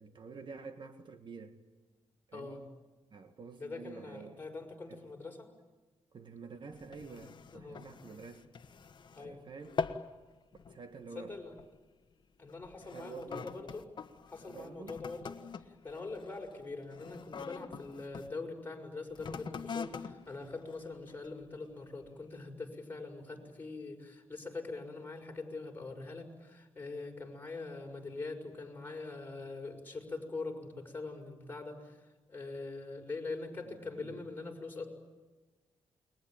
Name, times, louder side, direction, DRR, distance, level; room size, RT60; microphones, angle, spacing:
voice 1, 0.0-1.6 2.3-2.6 3.1-4.4 4.9-5.0 6.1-8.5 9.2-9.8 10.7-11.3 12.8-13.5 14.5-15.0 33.6-34.2, right 5 dB, 50° right, 1.8 m, -49 dB
voice 2, 2.3-2.6 3.6-5.5 7.5-7.9 9.1-9.4 11.1-11.5 12.4-13.8 14.3-15.4 15.7-32.0 32.3-34.9, left 3 dB, 20° left, 6.1 m, -43 dB
sound 1, 6.7-9.3 9.6-10.2 10.5-10.8 11.5-11.8 12.5-18.3 19.1-21.4 22.0-22.1, left 5 dB, 50° left, 1.4 m, -44 dB
29.5 x 22.0 x 9.1 m
cardioid pair, 100°, 10 cm